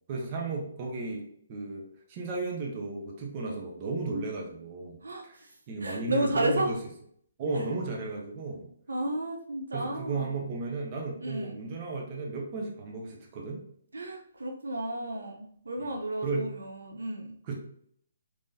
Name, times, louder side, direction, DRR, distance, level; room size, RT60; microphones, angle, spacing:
voice 1, 0.1-5.4 5.7-6.8 7.4-8.7 9.7-13.6 16.2-16.5 17.5-17.6, right 3 dB, 35° right, 0 dB, 0.9 m, -34 dB
voice 2, 5.0-5.5 5.8-6.7 7.5-7.6 8.9-10.3 11.2-11.6 13.9-17.4, right 1 dB, 85° right, 2 dB, 0.6 m, -32 dB
3.8 x 3.0 x 2.7 m, 0.66 s
hypercardioid pair, 150°, 0 cm